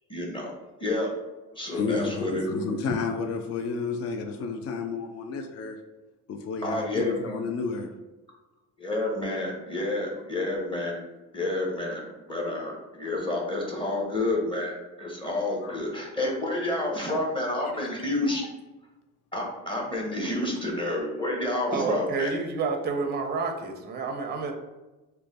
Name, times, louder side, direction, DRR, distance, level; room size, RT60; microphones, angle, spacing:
voice 1, 0.1-0.5 0.8-1.1 1.5-2.5 6.6-7.4 8.8-10.9 11.3-18.4 19.3-22.3, left 2 dB, 15° left, -2 dB, 0.9 m, -29 dB
voice 2, 1.7-5.8 6.3-7.9 15.6-15.8 17.7-17.9 18.3-18.5 20.4-20.5, left 4 dB, 40° left, 5 dB, 0.4 m, -31 dB
voice 3, 21.7-24.5, right 4 dB, 25° right, 4 dB, 0.5 m, -29 dB
3.1 x 2.2 x 4.0 m, 1.1 s
cardioid pair, 105°, 37 cm